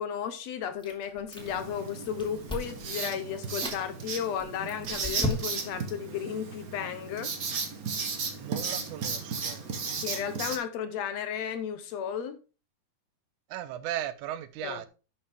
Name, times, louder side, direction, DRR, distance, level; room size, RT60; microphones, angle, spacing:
voice 1, 0.0-7.3 10.0-12.4 14.6-14.9, left 8 dB, 70° left, 1.8 m, -34 dB
Chewing mastication, 0.8-1.7 2.0-2.8 3.4-3.8 4.4-5.8, left 1 dB, ahead, 1.9 m, -35 dB
Writing, 1.4-10.6, right 5 dB, 55° right, 0.9 m, -35 dB
voice 2, 8.4-9.6 13.5-14.9, right 12 dB, 80° right, 2.2 m, -36 dB
11.5 x 5.9 x 3.5 m
omnidirectional pair, 3.6 m